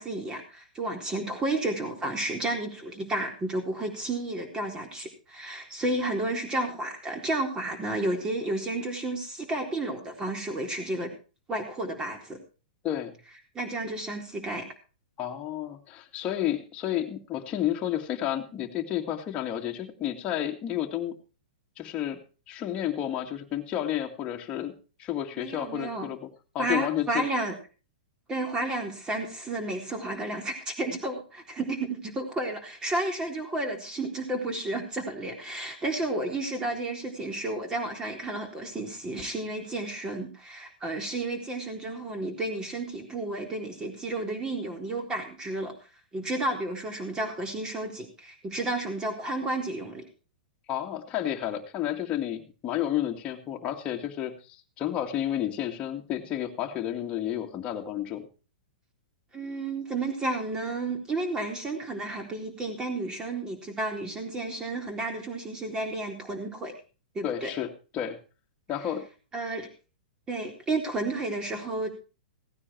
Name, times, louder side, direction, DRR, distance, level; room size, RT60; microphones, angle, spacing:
voice 1, 0.0-11.1 11.5-12.4 13.5-14.6 25.4-26.1 26.6-27.6 28.3-45.7 46.1-50.0 59.3-66.7 67.1-67.5 69.3-69.7 70.3-71.9, right 2 dB, 15° right, 4 dB, 3.7 m, -32 dB
voice 2, 12.8-13.2 15.2-21.2 21.8-22.2 22.5-24.7 25.0-26.3 26.5-27.2 50.7-58.3 67.2-67.7 67.9-68.2 68.7-69.1, left 11 dB, 25° left, 0 dB, 2.1 m, -31 dB
16.5 x 9.8 x 4.5 m, 0.35 s
hypercardioid pair, 135°, 5 cm